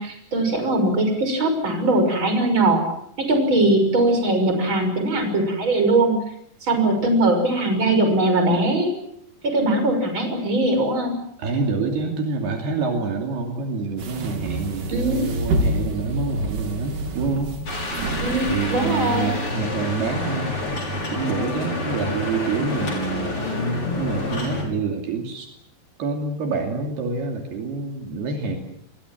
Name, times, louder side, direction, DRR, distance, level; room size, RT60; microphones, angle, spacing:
voice 1, 0.0-2.8 3.2-6.1 6.6-8.9 9.4-11.2 14.9-15.3 18.2-19.3, right 2 dB, 30° right, 6 dB, 6.6 m, -20 dB
voice 2, 11.4-17.6 18.5-20.6 21.1-23.3 24.0-25.5 26.0-28.6, right 4 dB, 70° right, 3 dB, 4.6 m, -27 dB
sound 1, 14.0-19.5, right 1 dB, 55° right, 4.2 m, -28 dB
sound 2, 17.7-24.6, left 2 dB, 30° left, 6.7 m, -28 dB
29.0 x 21.5 x 7.5 m, 0.69 s
omnidirectional pair, 4.8 m